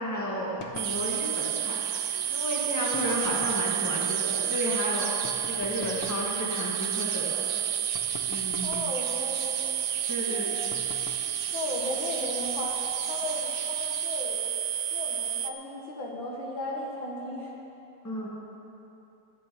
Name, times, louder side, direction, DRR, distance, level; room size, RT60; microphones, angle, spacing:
voice 1, 0.0-1.8 2.3-5.1 5.5-7.4 8.3-8.8 10.1-10.4 18.0-18.3, equal, 10° left, -4 dB, 1.6 m, -32 dB
sound 1, 0.6-1.0 2.9-3.7 5.2-6.3 7.9-9.0 10.7-11.3, left 4 dB, 85° left, 1.9 m, -44 dB
sound 2, 0.8-14.2, right 3 dB, 45° right, 0.7 m, -42 dB
sound 3, 0.8-15.5, right 12 dB, 80° right, 0.9 m, -30 dB
voice 2, 8.6-9.7 10.3-10.6 11.5-14.5 14.9-17.5, left 2 dB, 65° left, -1 dB, 2.1 m, -36 dB
11.5 x 9.4 x 7.0 m, 3.0 s
omnidirectional pair, 2.4 m